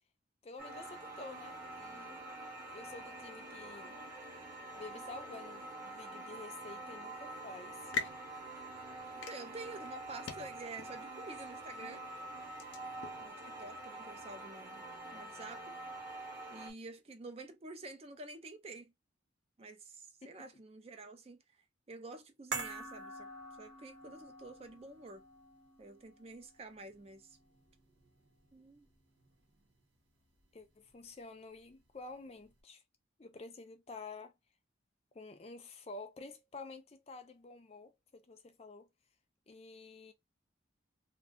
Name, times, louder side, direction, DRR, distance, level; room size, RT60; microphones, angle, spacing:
voice 1, 0.4-2.2 2.7-4.1 4.8-7.9 20.2-20.5 30.5-32.8 33.2-34.3 35.1-38.9 39.5-40.1, left 3 dB, 30° left, 0.4 m, -50 dB
sound 1, 0.6-16.7, right 2 dB, 15° right, 0.9 m, -46 dB
sound 2, 7.6-13.3, left 5 dB, 80° left, 0.6 m, -45 dB
voice 2, 9.3-12.1 13.2-14.8 15.1-15.8 16.5-18.9 19.6-21.6 21.9-23.3 23.6-25.2 25.8-27.4 28.5-28.9, right 2 dB, 30° right, 0.4 m, -49 dB
sound 3, 22.5-28.9 29.2-29.3, right 3 dB, 70° right, 1.0 m, -47 dB
2.5 x 2.2 x 3.5 m
head